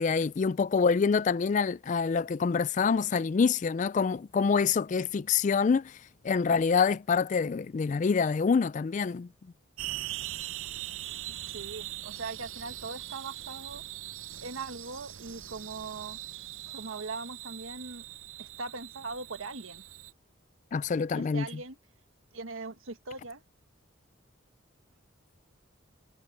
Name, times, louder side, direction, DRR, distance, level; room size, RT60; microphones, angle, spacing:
voice 1, 0.0-9.3 20.7-21.6, left 5 dB, 40° left, 0.3 m, -26 dB
sound 1, 9.8-20.1, right 14 dB, 75° right, 0.7 m, -41 dB
voice 2, 11.5-13.8 14.4-16.2 16.7-18.0 18.4-19.8 21.1-21.8 22.3-23.4, right 3 dB, 90° right, 1.5 m, -40 dB
head